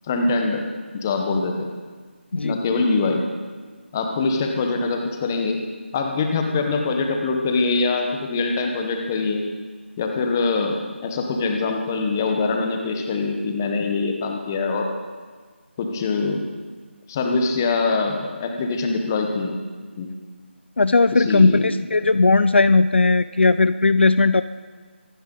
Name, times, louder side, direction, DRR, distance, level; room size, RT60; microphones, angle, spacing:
voice 1, 0.1-0.6 0.9-1.7 2.4-3.2 3.9-5.6 5.9-9.4 10.0-14.9 15.8-16.4 17.1-19.5 20.0-20.1 21.1-21.7, left 3 dB, 15° left, 3 dB, 1.0 m, -23 dB
voice 2, 20.8-24.4, left 3 dB, 65° left, 13 dB, 0.5 m, -17 dB
24.0 x 10.0 x 3.9 m, 1.5 s
figure-of-eight pair, 170°, 7 cm